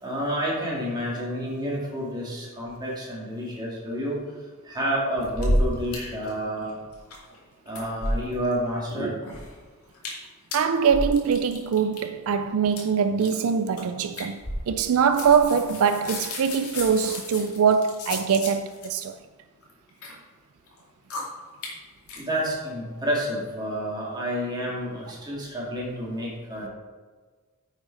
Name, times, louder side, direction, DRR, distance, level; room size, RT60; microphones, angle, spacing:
voice 1, 0.0-4.2 4.6-6.7 7.7-9.1 22.2-26.7, equal, 20° right, 2.8 m, -29 dB
sound 1, 5.2-6.0 6.2-6.3 6.6-7.4 7.7-8.5 8.9-9.5 9.9-10.2 10.5-12.0 12.7-12.8 13.2-13.4 13.8-13.9 14.1-14.9 15.1-18.9 19.6-20.1 20.7-20.8 21.1-21.2 21.6-21.7 22.1-22.2, equal, 75° left, 2.4 m, -30 dB
voice 2, 10.5-19.2, right 6 dB, 70° right, 0.4 m, -23 dB
9.5 x 6.7 x 4.9 m
head